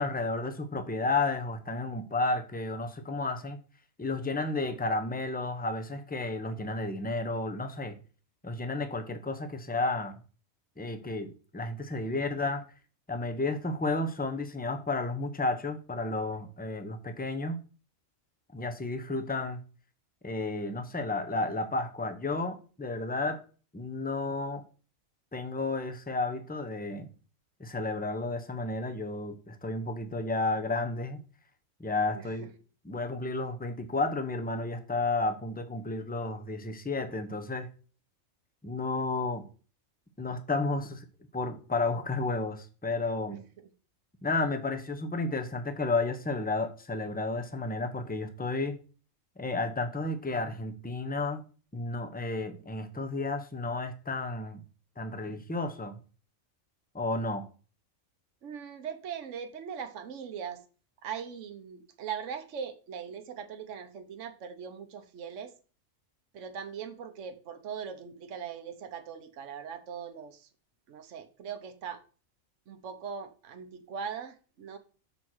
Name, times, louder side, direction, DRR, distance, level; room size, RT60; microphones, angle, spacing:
voice 1, 0.0-3.6 4.0-7.9 8.4-10.2 10.8-12.6 13.1-17.6 18.5-19.6 20.2-23.4 23.7-24.6 25.3-27.1 27.6-31.2 31.8-32.5 32.8-37.7 38.6-39.4 40.2-41.0 41.3-43.4 44.2-48.8 49.4-51.4 51.7-54.6 55.0-56.0 56.9-57.4, left 3 dB, 10° left, 0.6 m, -32 dB
voice 2, 43.3-43.7 58.4-60.6 61.0-65.5 66.3-70.5 70.9-72.0 72.7-74.8, right 7 dB, 65° right, 1.3 m, -40 dB
7.1 x 4.4 x 6.2 m
omnidirectional pair, 1.4 m